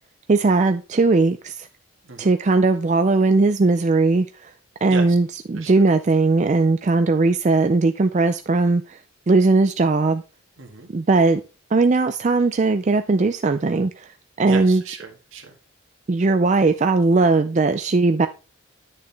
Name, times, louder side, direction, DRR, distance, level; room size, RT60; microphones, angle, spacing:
voice 1, 0.3-1.7 2.2-4.5 4.8-9.0 9.3-10.2 10.9-11.4 11.7-14.1 14.4-14.8 16.1-18.3, right 3 dB, 35° right, 0.4 m, -18 dB
voice 2, 2.0-2.4 4.8-5.2 5.5-5.8 10.6-10.9 14.4-15.5, right 4 dB, 70° right, 1.9 m, -36 dB
11.0 x 6.6 x 3.4 m
head